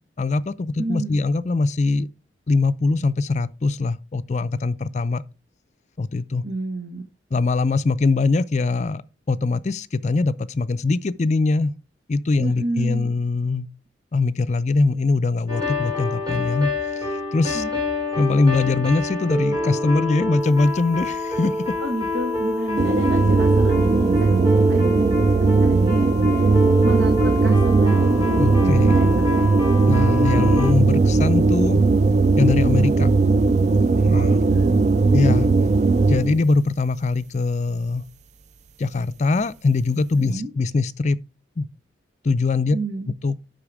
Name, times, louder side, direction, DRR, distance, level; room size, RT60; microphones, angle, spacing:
voice 1, 0.2-2.1 2.5-5.2 6.0-6.4 7.3-9.0 9.3-11.7 12.1-13.7 14.1-16.7 17.3-17.6 18.2-21.7 28.4-29.1 29.9-31.8 32.4-33.1 34.0-34.4 35.1-35.5 36.1-38.1 38.8-41.2 41.6-41.7 42.2-42.8 43.2-43.4, left 3 dB, 40° left, 0.4 m, -22 dB
voice 2, 0.8-1.2 6.4-7.0 12.4-13.2 17.5-17.7 21.8-25.2 25.6-28.2 28.6-29.6 34.1-34.8 40.1-40.5 42.7-43.1, right 2 dB, 85° right, 1.4 m, -30 dB
sound 1, 15.5-30.7, left 1 dB, 20° right, 2.5 m, -26 dB
sound 2, 22.8-36.4, right 3 dB, 40° right, 0.3 m, -18 dB
8.5 x 5.7 x 4.8 m
head